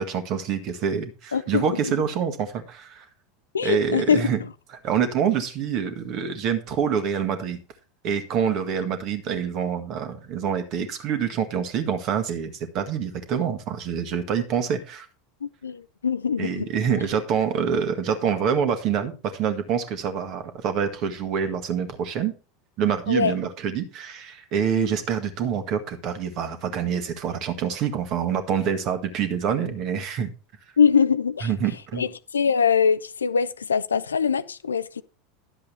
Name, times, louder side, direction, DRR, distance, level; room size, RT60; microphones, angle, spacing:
voice 1, 0.0-3.0 3.6-4.4 4.8-7.6 8.0-15.1 16.4-22.3 22.8-30.3 31.4-32.1, right 7 dB, 45° right, 1.7 m, -26 dB
voice 2, 1.3-1.9 3.5-4.3 15.4-16.7 23.1-23.3 24.8-24.9 30.8-31.5 32.0-35.0, left 6 dB, 75° left, 0.4 m, -23 dB
11.5 x 7.6 x 4.3 m
figure-of-eight pair, 80°, 0 cm